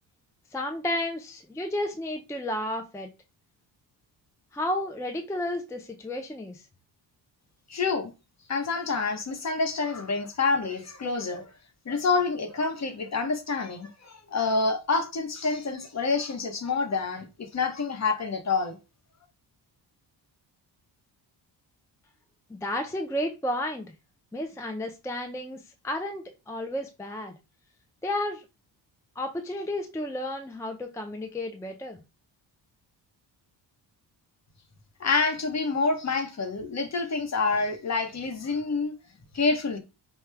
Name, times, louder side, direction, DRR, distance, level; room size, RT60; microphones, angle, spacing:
voice 1, 0.5-3.1 4.5-6.6 22.5-23.9 24.3-27.3 28.0-28.4 29.2-32.0, left 1 dB, 5° left, 0.5 m, -32 dB
voice 2, 7.7-8.1 8.5-11.4 11.9-18.8 35.0-38.9 39.3-39.8, left 4 dB, 35° left, 0.9 m, -27 dB
4.6 x 2.3 x 3.3 m
cardioid pair, 100°, 44 cm